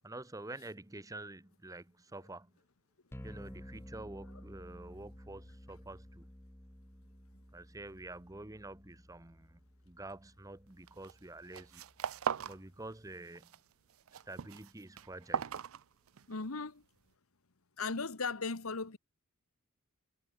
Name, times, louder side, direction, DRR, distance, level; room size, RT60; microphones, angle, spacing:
voice 1, 0.0-2.5 3.2-6.2 7.5-9.6 9.9-11.8 12.5-13.5 14.1-15.4, right 2 dB, 15° right, 1.0 m, -48 dB
sound 1, 3.1-13.1, equal, 10° left, 1.9 m, -54 dB
sound 2, 10.9-11.2 11.5-12.6 12.9-13.6 13.9-16.4, right 7 dB, 75° right, 0.5 m, -39 dB
voice 2, 16.3-16.8 17.8-19.0, left 4 dB, 80° left, 1.5 m, -37 dB
head